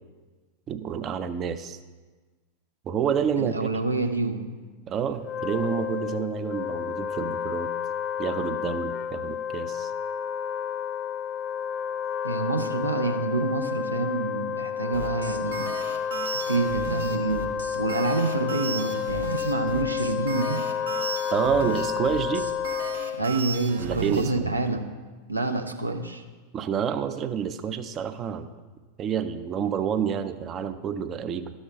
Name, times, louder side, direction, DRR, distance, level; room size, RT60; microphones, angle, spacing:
voice 1, 0.7-1.8 2.8-3.7 4.9-7.7 8.2-9.9 21.3-22.5 23.8-24.6 26.5-28.5 29.0-31.5, right 7 dB, 30° right, 10 dB, 0.5 m, -28 dB
voice 2, 3.3-4.5 12.2-15.7 16.5-20.6 23.2-24.9 25.3-26.2, right 3 dB, 80° right, 4 dB, 0.7 m, -27 dB
Wind instrument woodwind instrument, 5.2-23.3, left 8 dB, 30° left, 0.3 m, -30 dB
sound 1, 14.9-24.3, right 4 dB, 65° right, 0.9 m, -35 dB
12.5 x 4.3 x 4.7 m, 1.3 s
figure-of-eight pair, 90°, 0 cm